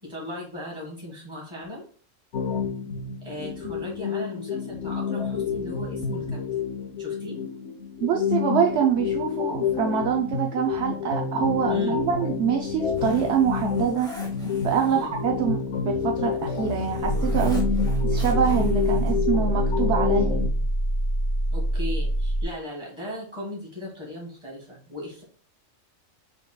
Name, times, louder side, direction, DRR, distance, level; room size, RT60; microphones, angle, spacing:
voice 1, 0.0-1.8 3.2-6.2 6.5-6.7 7.0-7.4 11.7-12.0 14.9-15.1 21.5-25.2, left 1 dB, 20° right, -4 dB, 1.8 m, -37 dB
sound 1, 2.3-20.5, left 6 dB, 70° left, 1.0 m, -28 dB
voice 2, 8.0-14.2 14.6-17.6 18.0-20.4, right 8 dB, 65° right, 1 dB, 0.8 m, -25 dB
Zipper (clothing), 12.0-19.4, left 1 dB, 5° left, 0.9 m, -45 dB
sound 2, 17.0-22.4, right 1 dB, 35° left, 1.0 m, -25 dB
5.7 x 3.7 x 2.2 m, 0.43 s
omnidirectional pair, 1.3 m